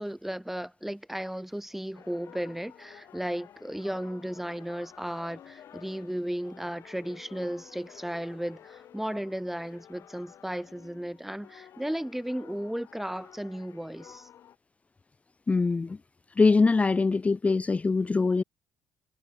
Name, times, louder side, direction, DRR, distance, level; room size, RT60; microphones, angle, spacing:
voice 1, 0.0-14.3, equal, 5° right, 1.0 m, -35 dB
sound 1, 1.9-14.6, left 10 dB, 50° left, 3.9 m, -52 dB
voice 2, 15.5-16.0 16.4-18.4, left 4 dB, 20° left, 0.5 m, -23 dB
figure-of-eight pair, 50°, 6 cm